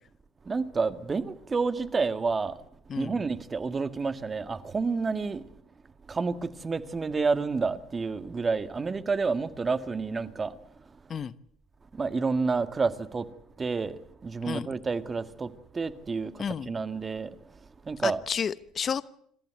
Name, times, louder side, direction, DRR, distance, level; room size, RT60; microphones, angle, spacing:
voice 1, 0.4-2.7 3.0-5.4 6.1-10.6 10.9-11.0 11.9-18.2, right 4 dB, 25° right, 1.8 m, -30 dB
voice 2, 16.4-16.7 18.0-19.0, left 7 dB, 40° left, 0.9 m, -31 dB
27.0 x 14.5 x 9.3 m
hypercardioid pair, 65°, 0 cm